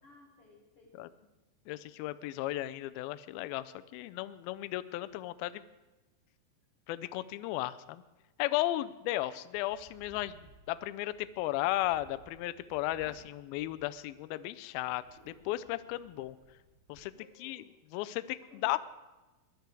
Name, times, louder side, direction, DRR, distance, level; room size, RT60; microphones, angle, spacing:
voice 1, 0.0-1.3 17.1-17.7 18.4-18.8, left 3 dB, 60° left, -1 dB, 1.5 m, -59 dB
voice 2, 1.7-5.6 6.9-8.0 8.4-16.4 16.9-17.1 17.4-17.6 17.9-18.8, left 16 dB, 85° left, 13 dB, 2.2 m, -35 dB
sound 1, 9.5-14.3 14.7-17.1, right 4 dB, 80° right, 4.1 m, -60 dB
21.0 x 11.0 x 4.6 m, 1.1 s
omnidirectional pair, 4.9 m